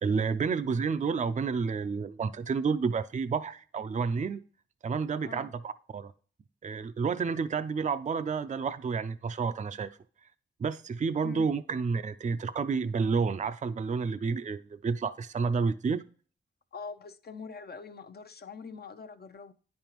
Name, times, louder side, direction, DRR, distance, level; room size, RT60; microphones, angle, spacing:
voice 1, 0.0-4.4 4.8-6.1 6.6-9.9 10.6-16.0, right 5 dB, 35° right, 0.4 m, -30 dB
voice 2, 16.7-19.5, left 5 dB, 50° left, 0.6 m, -43 dB
9.5 x 5.3 x 3.0 m
cardioid pair, 45°, 20 cm